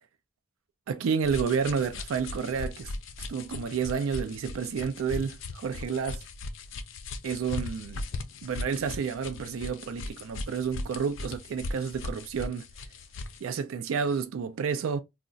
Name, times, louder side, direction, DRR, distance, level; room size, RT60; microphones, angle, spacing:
voice 1, 0.9-2.9 3.3-6.2 7.2-8.0 8.4-12.7 13.4-15.0, right 6 dB, 85° right, 0.4 m, -30 dB
sound 1, 1.2-13.4, left 2 dB, 70° left, 0.4 m, -38 dB
2.3 x 2.1 x 3.7 m
head